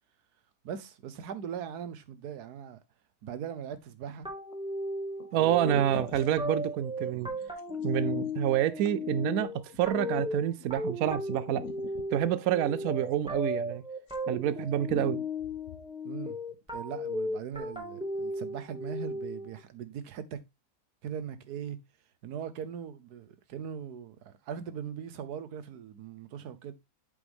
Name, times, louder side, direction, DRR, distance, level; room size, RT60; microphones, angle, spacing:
voice 1, 0.6-2.8 3.2-4.3 5.3-5.6 5.9-6.1 16.0-16.4 16.7-20.4 21.0-21.8 22.2-26.7, right 8 dB, 90° right, 1.4 m, -40 dB
sound 1, 4.1-4.5 5.2-5.3 5.5-10.8 11.3-13.8 14.0-14.6 14.9-15.9, left 8 dB, 65° left, 1.2 m, -46 dB
sound 2, 4.2-19.6, left 1 dB, 5° right, 1.8 m, -36 dB
voice 2, 5.3-7.3 7.8-9.5 9.8-11.7 12.1-13.8 14.3-15.2, right 11 dB, 75° right, 1.0 m, -28 dB
8.3 x 5.3 x 3.5 m
omnidirectional pair, 1.6 m